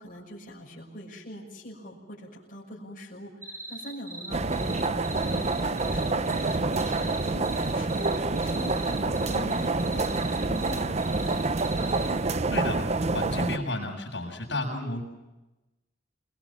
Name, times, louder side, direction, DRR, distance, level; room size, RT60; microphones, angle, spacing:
voice 1, 0.0-11.5, equal, 50° left, -5 dB, 6.3 m, -42 dB
sound 1, 3.4-12.1, right 3 dB, 15° right, 5.5 m, -40 dB
sound 2, 4.3-13.6, right 3 dB, 35° right, 0.9 m, -27 dB
voice 2, 12.5-12.8 13.1-15.0, left 2 dB, 70° left, 0 dB, 7.4 m, -31 dB
29.0 x 21.0 x 7.5 m, 1.0 s
head